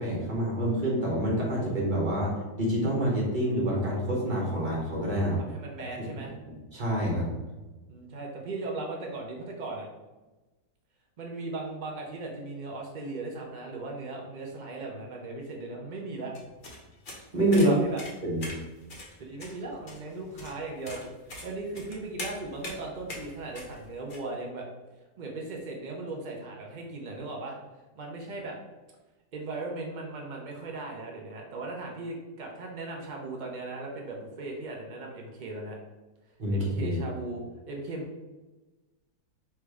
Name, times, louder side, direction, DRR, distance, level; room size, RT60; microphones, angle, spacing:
voice 1, 0.0-5.4 6.0-6.1 6.7-7.3 17.3-17.7 18.2-18.4 36.4-37.0, right 1 dB, 30° right, -4 dB, 1.4 m, -27 dB
voice 2, 5.4-6.3 7.9-9.9 11.2-16.3 17.5-18.0 19.2-21.0 21.4-24.7 25.2-27.6 28.0-28.6 29.3-35.8 36.5-38.1, right 2 dB, 90° right, 0 dB, 0.4 m, -38 dB
sound 1, 16.3-24.2, left 1 dB, 40° left, 0.8 m, -43 dB
3.4 x 3.2 x 4.7 m, 1.1 s
omnidirectional pair, 1.9 m